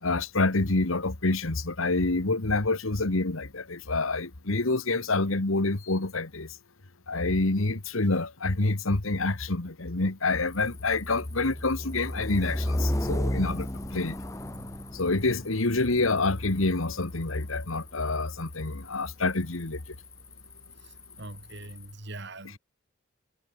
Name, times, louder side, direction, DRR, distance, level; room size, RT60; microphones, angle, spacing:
voice 1, 0.0-6.6 7.1-14.2 14.9-19.8 22.4-22.6, left 2 dB, 80° left, 1.7 m, -27 dB
sound 1, 10.5-21.9, left 1 dB, 15° left, 1.5 m, -35 dB
voice 2, 21.2-22.6, right 2 dB, 55° right, 3.5 m, -42 dB
head